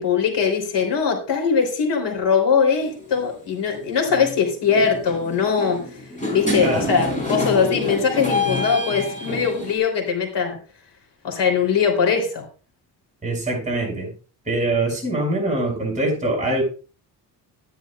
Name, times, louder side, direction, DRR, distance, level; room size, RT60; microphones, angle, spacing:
voice 1, 0.0-5.8 6.3-10.6 11.2-12.4, left 6 dB, 80° left, 3 dB, 3.4 m, -21 dB
sound 1, 2.9-3.1 4.1-4.3 4.7-9.8, left 2 dB, 20° left, 4.4 m, -27 dB
voice 2, 13.2-14.1 14.5-16.6, right 2 dB, 15° right, 0 dB, 6.2 m, -23 dB
13.0 x 11.0 x 2.4 m, 0.37 s
cardioid pair, 130°, 41 cm